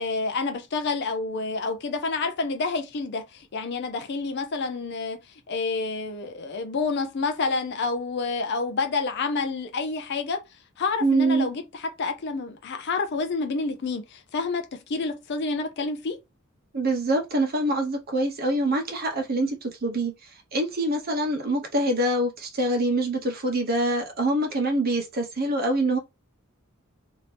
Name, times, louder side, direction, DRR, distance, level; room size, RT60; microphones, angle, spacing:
voice 1, 0.0-5.2 5.5-10.4 10.8-16.2, left 4 dB, 55° left, 0.4 m, -28 dB
voice 2, 11.0-11.5 16.7-20.1 20.5-26.0, right 1 dB, 45° right, 0.9 m, -25 dB
2.9 x 2.6 x 3.2 m
head